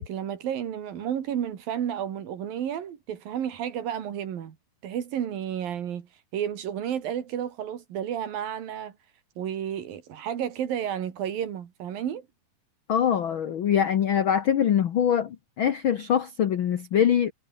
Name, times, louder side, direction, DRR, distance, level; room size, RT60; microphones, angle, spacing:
voice 1, 0.0-4.6 4.8-6.1 6.3-8.9 9.4-12.3, right 9 dB, 90° right, 4.1 m, -31 dB
voice 2, 12.9-17.3, left 9 dB, 80° left, 1.1 m, -23 dB
omnidirectional pair, 3.9 m